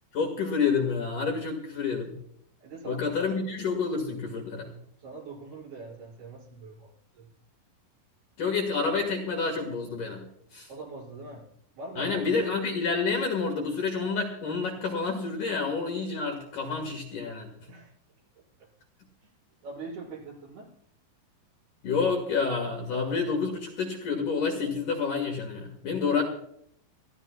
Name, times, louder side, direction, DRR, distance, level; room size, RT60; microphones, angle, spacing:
voice 1, 0.1-2.2 2.8-4.7 8.4-10.2 10.5-10.7 12.0-17.5 21.8-26.2, left 4 dB, 55° left, 1 dB, 3.0 m, -29 dB
voice 2, 2.6-3.3 5.0-7.3 10.7-11.4 11.8-12.5 16.6-16.7 17.7-17.9 19.2-19.3 19.6-20.7, right 3 dB, 60° right, -4 dB, 7.5 m, -42 dB
27.5 x 14.0 x 2.3 m, 0.69 s
omnidirectional pair, 5.1 m